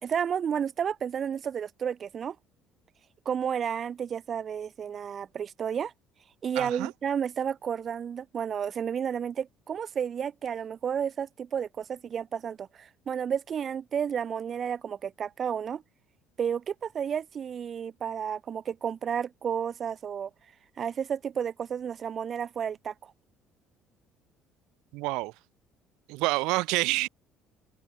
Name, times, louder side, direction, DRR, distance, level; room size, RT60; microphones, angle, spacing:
voice 1, 0.0-2.4 3.2-5.9 6.4-15.8 16.4-20.3 20.8-23.1, right 8 dB, 30° right, 2.8 m, -32 dB
voice 2, 6.6-6.9 24.9-25.3 26.1-27.1, right 23 dB, 85° right, 3.6 m, -28 dB
cardioid pair, 160°, 0 cm